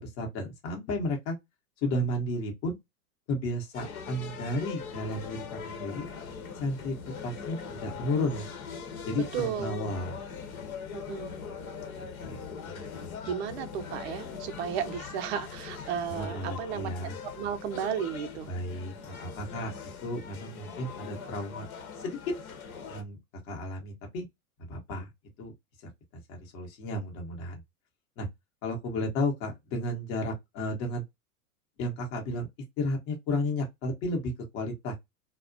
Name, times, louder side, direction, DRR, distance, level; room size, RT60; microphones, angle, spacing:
voice 1, 0.0-1.4 1.8-2.8 3.3-6.0 6.6-7.0 7.2-8.5 9.0-10.2 12.2-12.4 12.7-13.0 16.1-17.1 18.5-19.7 20.0-21.7 22.0-22.2 22.9-23.2 23.5-24.3 24.7-25.1 25.4-25.5 26.3-27.6 28.2-28.3 28.6-31.0 31.8-32.5 32.8-34.9, left 1 dB, 30° left, 0.8 m, -33 dB
sound 1, 3.7-23.0, left 6 dB, 70° left, 0.9 m, -41 dB
voice 2, 9.3-9.8 10.9-11.4 13.3-18.5, right 8 dB, 45° right, 0.5 m, -34 dB
2.3 x 2.1 x 2.5 m
hypercardioid pair, 120°, 45 cm